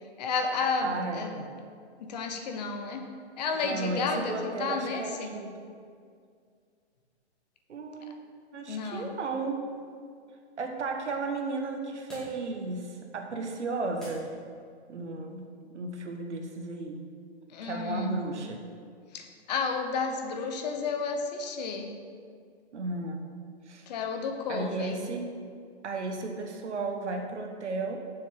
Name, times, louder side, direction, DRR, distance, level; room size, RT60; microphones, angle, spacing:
voice 1, 0.2-1.4 2.0-3.1 3.4-5.3 8.7-9.1 17.5-18.2 19.1-21.9 23.9-25.0, left 4 dB, 40° left, 5 dB, 0.9 m, -32 dB
voice 2, 0.8-1.5 3.5-5.7 7.7-8.2 8.5-9.6 10.6-14.3 14.9-17.0 17.6-18.6 22.7-23.2 23.7-23.9 24.5-25.4 25.8-28.0, right 3 dB, 85° right, 3 dB, 1.4 m, -34 dB
sound 1, 8.8-14.9, equal, ahead, 2.0 m, -55 dB
7.3 x 6.6 x 5.7 m, 2.2 s
hypercardioid pair, 155°, 34 cm